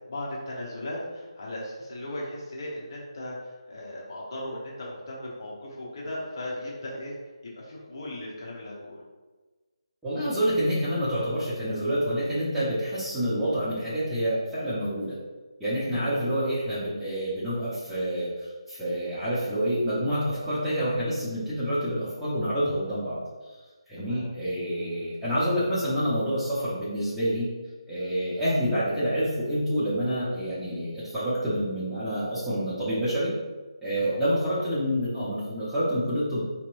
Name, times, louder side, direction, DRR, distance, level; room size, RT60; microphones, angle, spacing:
voice 1, 0.1-7.2 7.4-9.0 24.1-24.3 34.0-34.2, left 1 dB, 45° left, -4 dB, 1.0 m, -37 dB
voice 2, 10.0-15.2 15.6-23.2 23.9-27.5 27.9-33.3 33.8-36.4, equal, 5° right, -13 dB, 0.9 m, -27 dB
4.2 x 3.0 x 2.6 m, 1.3 s
figure-of-eight pair, 155°, 3 cm